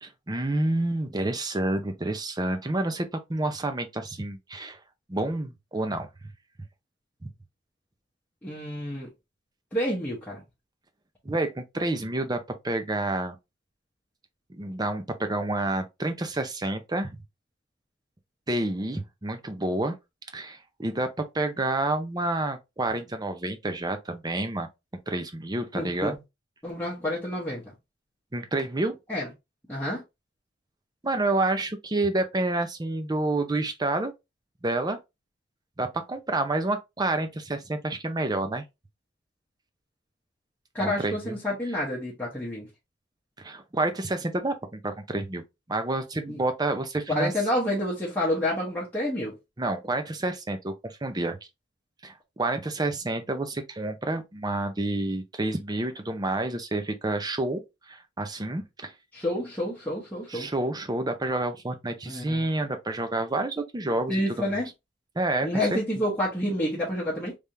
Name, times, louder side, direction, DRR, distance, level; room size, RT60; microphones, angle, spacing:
voice 1, 0.0-4.8 5.1-6.1 11.2-13.4 14.5-17.2 18.5-20.0 20.3-24.7 25.1-26.2 28.3-29.0 31.0-34.1 34.6-35.0 35.8-38.6 40.8-41.4 43.4-45.4 45.7-47.3 49.6-51.4 52.0-58.9 60.3-64.5 65.2-65.8, right 2 dB, 20° right, 0.6 m, -29 dB
voice 2, 8.4-9.1 9.7-10.4 25.7-26.1 26.6-27.7 29.1-29.3 29.7-30.0 40.7-42.7 46.3-46.4 47.1-49.4 59.1-60.5 62.1-62.4 64.1-64.7 65.4-67.4, left 1 dB, 10° left, 1.0 m, -29 dB
3.4 x 3.4 x 2.7 m
head